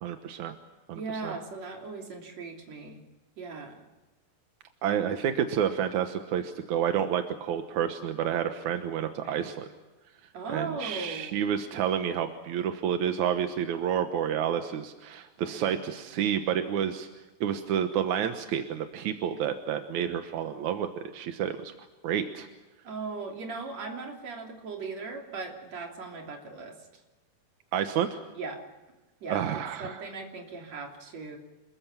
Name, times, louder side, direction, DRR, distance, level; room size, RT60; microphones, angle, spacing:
voice 1, 0.0-0.5 0.9-1.3 4.8-9.7 10.5-17.1 17.4-21.7 22.0-22.5 27.7-28.2 29.3-30.0, right 9 dB, 65° right, 7 dB, 2.0 m, -29 dB
voice 2, 0.9-3.0 3.4-3.8 9.2-9.5 10.3-11.3 15.5-15.7 22.8-26.8 28.3-28.6 29.2-31.4, right 4 dB, 45° right, 2 dB, 4.1 m, -38 dB
27.5 x 21.5 x 7.2 m, 1.1 s
omnidirectional pair, 4.6 m